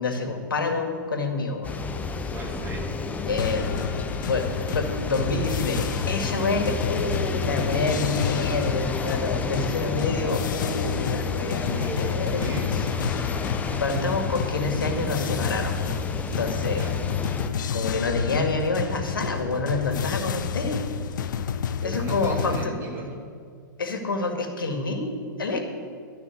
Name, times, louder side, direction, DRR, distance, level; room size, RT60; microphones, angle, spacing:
voice 1, 0.0-1.8 2.2-2.3 3.3-3.6 4.3-4.5 4.7-12.9 13.8-15.9 16.4-16.8 17.7-20.8 21.8-22.7 23.8-25.6, left 3 dB, 80° left, 4 dB, 2.0 m, -28 dB
sound 1, 1.6-17.5, left 4 dB, 15° left, 0.8 m, -31 dB
voice 2, 2.3-2.9 7.7-8.2 11.7-12.7 16.7-17.0 21.8-23.2, right 1 dB, 25° right, 0 dB, 2.8 m, -35 dB
sound 2, 3.4-22.7, left 7 dB, 65° left, 0.7 m, -30 dB
13.5 x 6.0 x 9.3 m, 2.1 s
hypercardioid pair, 115°, 11 cm